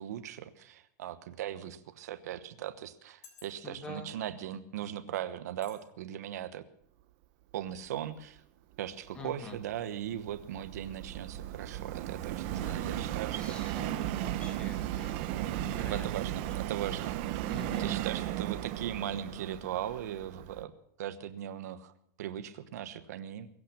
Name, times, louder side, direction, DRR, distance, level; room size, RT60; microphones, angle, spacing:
voice 1, 0.0-6.6 7.5-8.4 8.8-13.7 15.8-17.2 17.8-20.7 21.0-21.9 22.2-23.5, right 11 dB, 60° right, 11 dB, 1.1 m, -39 dB
sound 1, 1.1-1.3 2.0-2.1 3.0-3.9 4.6-4.7 5.6-5.8 6.2-6.4, left 7 dB, 45° left, 3.4 m, -56 dB
voice 2, 3.6-4.1 9.1-9.6 12.5-13.0 13.4-16.1 17.5-18.0, left 2 dB, 10° left, 7 dB, 1.1 m, -46 dB
Subway metro underground, 9.3-20.6, right 13 dB, 35° right, 0.6 m, -36 dB
22.5 x 8.8 x 6.0 m, 0.71 s
supercardioid pair, 180°, 10 cm